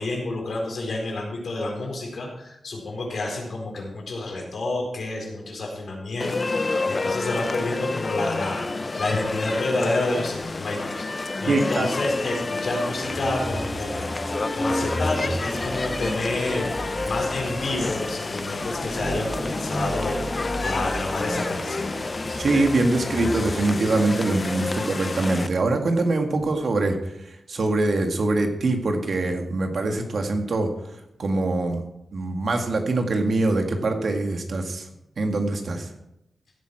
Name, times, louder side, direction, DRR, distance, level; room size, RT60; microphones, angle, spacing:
voice 1, 0.0-22.0, left 2 dB, 75° left, 0 dB, 4.4 m, -29 dB
sound 1, 6.2-25.5, left 3 dB, 35° left, 0.6 m, -29 dB
voice 2, 11.5-11.9 22.4-27.0 27.3-30.7 31.2-31.8 32.1-34.9 35.2-35.9, right 2 dB, 65° right, 4 dB, 2.0 m, -23 dB
sound 2, 12.9-23.7, equal, ahead, 2.8 m, -33 dB
15.5 x 9.3 x 4.8 m, 0.85 s
wide cardioid pair, 110°, 0 cm